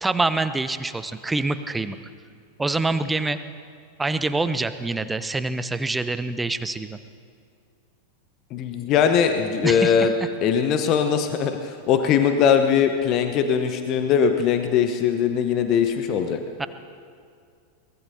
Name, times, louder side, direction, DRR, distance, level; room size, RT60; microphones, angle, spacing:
voice 1, 0.0-2.0 2.6-3.4 4.0-7.0 9.6-10.1 16.6-16.7, right 3 dB, 10° right, 12 dB, 0.6 m, -25 dB
voice 2, 8.5-10.1 10.4-16.4, left 7 dB, 35° left, 7 dB, 0.9 m, -21 dB
23.0 x 19.5 x 2.8 m, 2.2 s
figure-of-eight pair, 90°, 0 cm